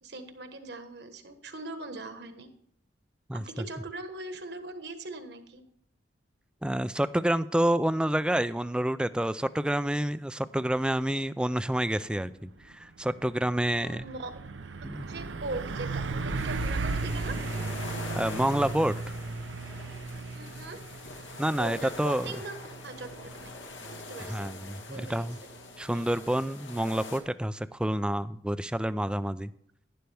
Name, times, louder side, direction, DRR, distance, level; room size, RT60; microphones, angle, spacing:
voice 1, 0.0-2.5 3.4-5.6 13.8-14.3 15.1-17.4 20.3-20.8 21.6-22.6 22.8-23.1 23.4-23.5 24.1-24.4 24.9-25.3 25.9-26.2, right 2 dB, 60° right, 7 dB, 1.3 m, -40 dB
voice 2, 6.6-14.0 14.8-15.0 18.2-18.9 21.4-22.3 24.3-25.4 25.8-29.5, right 1 dB, 5° right, 14 dB, 0.3 m, -28 dB
Truck, 12.5-12.7 13.1-25.6, right 3 dB, 85° right, 0.6 m, -36 dB
sound 1, 16.3-27.2, left 2 dB, 90° left, 2.0 m, -44 dB
11.5 x 10.5 x 3.4 m, 0.71 s
head